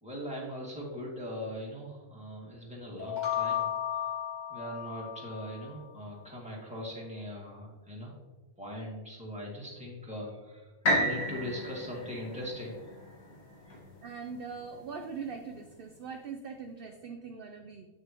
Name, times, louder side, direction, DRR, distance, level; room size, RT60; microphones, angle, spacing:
voice 1, 0.0-3.7 4.5-8.1 8.6-13.1 13.6-13.8, equal, 5° right, -4 dB, 2.1 m, -40 dB
sound 1, 3.0-5.8, left 10 dB, 35° left, 1.2 m, -34 dB
sound 2, 10.8-14.8 15.4-15.5, equal, 75° left, 2.2 m, -33 dB
voice 2, 14.0-17.9, right 5 dB, 55° right, 5 dB, 0.7 m, -41 dB
9.0 x 6.6 x 3.0 m, 1.3 s
omnidirectional pair, 1.4 m